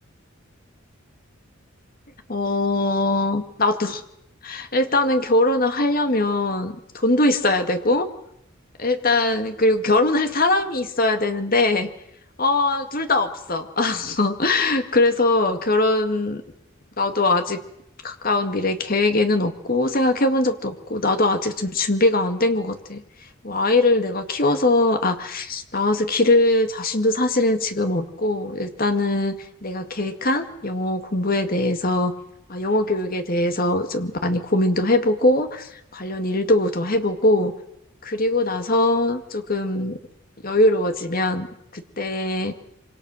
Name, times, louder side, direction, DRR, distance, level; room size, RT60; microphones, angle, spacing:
voice 1, 2.3-4.0 4.4-8.1 8.8-11.9 12.4-16.4 17.0-17.6 18.0-23.0 23.4-32.1 32.5-37.5 38.0-40.0 40.4-41.5 41.7-42.5, left 2 dB, 45° left, 7 dB, 2.1 m, -21 dB
26.0 x 25.0 x 6.5 m, 0.79 s
head